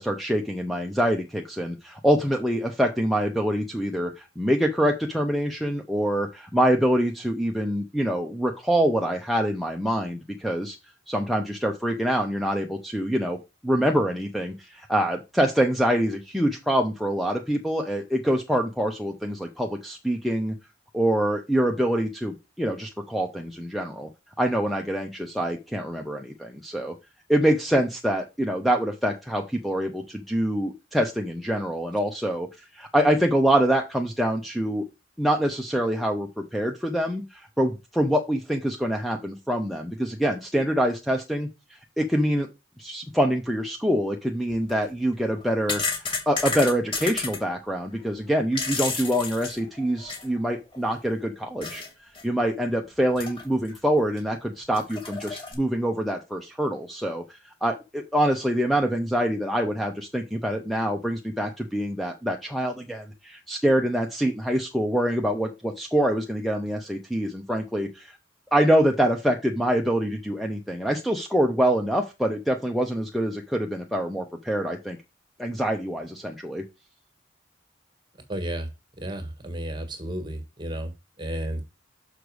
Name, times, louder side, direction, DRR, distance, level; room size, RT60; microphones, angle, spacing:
voice 1, 0.0-10.8 11.1-13.4 13.6-20.5 20.9-24.1 24.4-26.9 27.3-34.8 35.2-42.5 42.8-45.8 46.1-51.8 52.2-68.2 68.5-75.0 75.4-76.6, equal, ahead, 1 dB, 0.7 m, -25 dB
sound 1, 44.5-44.7 45.3-47.4 48.3-50.4 50.7-50.8 51.6-51.9 52.1-52.2 53.1-53.8 54.2-54.3 54.7-55.5, left 4 dB, 30° left, 2.4 m, -31 dB
voice 2, 78.3-78.7 79.0-80.9 81.2-81.6, right 1 dB, 25° right, 7 dB, 1.7 m, -32 dB
6.6 x 5.1 x 4.8 m, 0.26 s
head